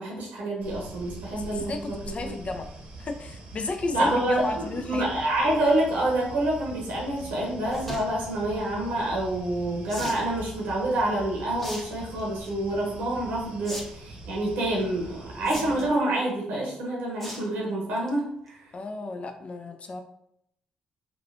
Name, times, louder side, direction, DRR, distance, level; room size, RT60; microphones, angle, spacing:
voice 1, 0.0-2.3 3.9-18.6, right 1 dB, 75° right, -3 dB, 0.7 m, -27 dB
sound 1, 0.6-15.9, right 2 dB, 50° right, 0.8 m, -43 dB
voice 2, 1.3-2.7 3.0-5.1 15.4-15.9 18.7-20.0, left 3 dB, 45° left, 5 dB, 0.4 m, -34 dB
sound 2, 7.6-8.0 9.9-10.2 11.6-11.8 12.2-12.5 13.6-13.8 14.1-14.2 15.5-16.0 17.2-17.5 17.9-18.1 18.5-18.6 18.8-18.9, equal, 10° left, 0.9 m, -37 dB
3.1 x 2.4 x 2.4 m, 0.75 s
hypercardioid pair, 45°, 3 cm